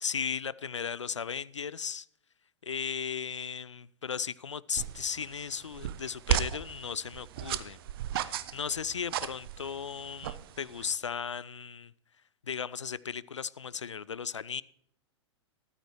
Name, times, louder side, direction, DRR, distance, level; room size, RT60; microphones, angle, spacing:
voice 1, 0.0-2.1 2.6-7.8 8.1-11.9 12.4-14.6, left 7 dB, 80° left, 0.4 m, -36 dB
sound 1, 4.8-11.0, right 11 dB, 50° right, 0.8 m, -35 dB
13.5 x 13.0 x 3.1 m
figure-of-eight pair, 100°, 15 cm